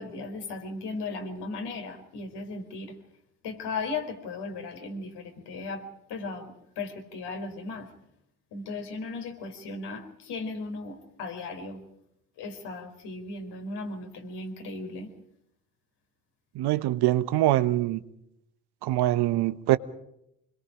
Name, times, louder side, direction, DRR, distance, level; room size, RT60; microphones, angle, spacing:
voice 1, 0.0-2.9 3.4-7.9 8.5-11.8 12.4-15.1, left 3 dB, 60° left, 4.5 m, -36 dB
voice 2, 16.5-18.0 18.8-19.8, right 15 dB, 60° right, 1.2 m, -24 dB
26.0 x 21.5 x 5.1 m
hypercardioid pair, 60°, 45 cm